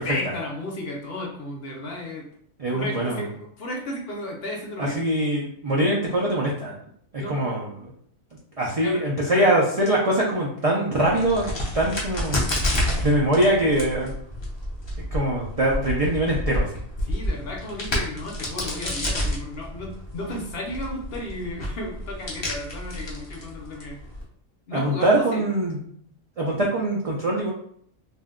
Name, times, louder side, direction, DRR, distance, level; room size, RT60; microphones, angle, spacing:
voice 1, 0.0-2.3 2.7-3.3 3.6-5.0 7.2-7.4 8.8-9.6 17.0-24.0 24.7-25.4, left 1 dB, 55° left, -1 dB, 0.8 m, -33 dB
voice 2, 2.6-3.3 4.8-6.8 7.3-7.9 8.6-12.5 13.0-14.1 15.1-16.8 24.7-25.8 26.4-27.5, right 1 dB, 70° right, -4 dB, 0.3 m, -23 dB
Crack, 11.0-24.2, left 1 dB, 30° left, 0.5 m, -30 dB
2.6 x 2.1 x 3.6 m, 0.64 s
omnidirectional pair, 1.4 m